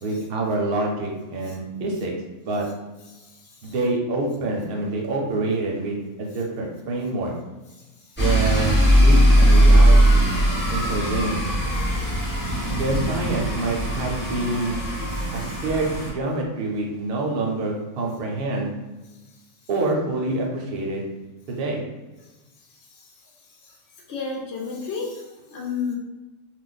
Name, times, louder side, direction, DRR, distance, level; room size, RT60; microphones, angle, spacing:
voice 1, 0.0-2.1 2.4-2.7 3.6-7.3 8.2-10.3 10.7-11.5 12.7-14.8 15.3-18.7 19.7-21.0 21.5-21.8, right 2 dB, 55° right, -1 dB, 0.8 m, -26 dB
sound 1, 8.2-16.1, equal, 10° left, 0.7 m, -19 dB
voice 2, 24.1-25.9, left 5 dB, 60° left, -3 dB, 0.9 m, -32 dB
2.5 x 2.1 x 3.9 m, 1.1 s
omnidirectional pair, 1.5 m